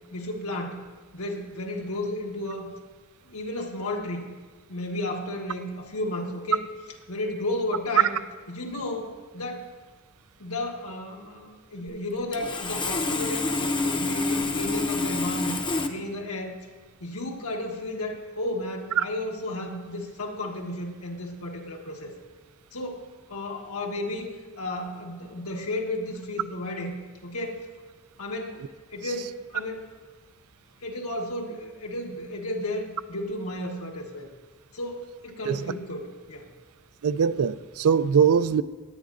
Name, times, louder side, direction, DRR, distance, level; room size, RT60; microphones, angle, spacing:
voice 1, 0.1-0.8 1.1-2.7 3.2-4.3 4.7-6.6 7.1-8.2 8.5-9.7 10.4-16.5 17.0-22.1 22.7-27.7 28.2-28.6 28.9-29.8 30.8-34.3 34.7-36.5, left 1 dB, 80° left, 1 dB, 1.4 m, -33 dB
Sawing, 12.3-15.9, left 3 dB, 20° left, 0.7 m, -27 dB
voice 2, 37.0-38.6, right 7 dB, 75° right, 15 dB, 0.4 m, -22 dB
17.5 x 10.5 x 2.5 m, 1.4 s
head